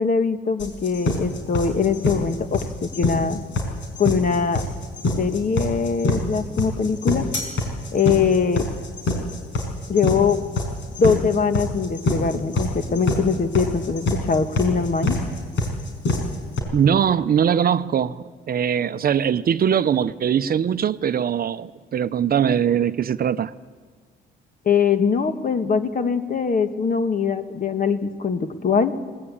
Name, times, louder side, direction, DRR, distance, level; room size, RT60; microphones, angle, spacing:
voice 1, 0.0-3.4 4.0-4.6 5.2-7.3 7.9-8.7 9.9-10.4 11.0-15.2 24.6-28.9, left 5 dB, 45° left, 1.6 m, -22 dB
sound 1, 0.6-16.6, left 2 dB, 70° left, 5.1 m, -25 dB
voice 2, 16.7-23.5, right 8 dB, 50° right, 0.7 m, -21 dB
21.0 x 19.0 x 8.6 m
cardioid pair, 90°, 20 cm